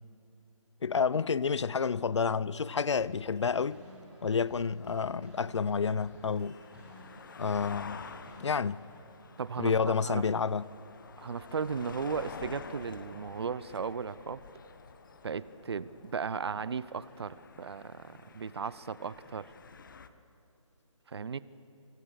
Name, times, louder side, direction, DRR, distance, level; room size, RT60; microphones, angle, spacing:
voice 1, 0.8-3.8 4.2-6.6 7.4-8.0 8.4-8.8 9.6-10.7, left 5 dB, 60° left, 0.6 m, -29 dB
sound 1, 2.9-9.0, equal, 5° right, 3.5 m, -55 dB
sound 2, 3.2-20.1, left 5 dB, 40° left, 1.0 m, -50 dB
sound 3, 8.6-20.0, left 3 dB, 15° left, 2.1 m, -64 dB
voice 2, 9.4-9.7 10.0-10.3 11.2-14.4 15.2-19.5 21.1-21.4, right 6 dB, 50° right, 0.6 m, -36 dB
25.0 x 23.5 x 6.9 m
figure-of-eight pair, 165°, 17 cm